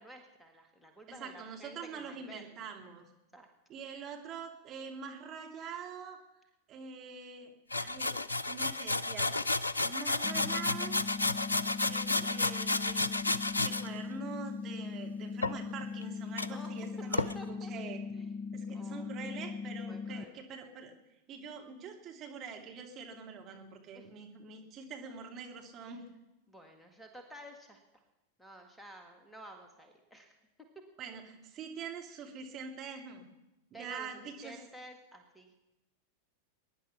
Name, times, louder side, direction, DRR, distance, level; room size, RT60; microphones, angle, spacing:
voice 1, 0.0-2.5 3.3-3.5 16.5-16.7 17.0-17.7 18.1-18.4 18.7-20.3 23.9-24.1 26.5-27.8 28.4-30.4 33.7-34.1 34.4-35.5, right 1 dB, 5° left, 5 dB, 1.9 m, -51 dB
voice 2, 1.1-3.1 3.7-6.2 6.7-8.2 8.4-9.3 9.8-11.0 11.8-13.1 13.6-18.0 18.5-20.9 21.3-26.0 31.0-33.3 33.7-34.6, right 5 dB, 30° right, 1 dB, 2.5 m, -45 dB
sound 1, 7.7-13.9 15.4-16.0 16.4-16.5 17.1-17.3, left 2 dB, 80° left, 0.5 m, -32 dB
sound 2, 10.2-20.2, left 5 dB, 25° left, 0.5 m, -40 dB
22.0 x 10.5 x 5.8 m, 0.98 s
figure-of-eight pair, 90°, 0 cm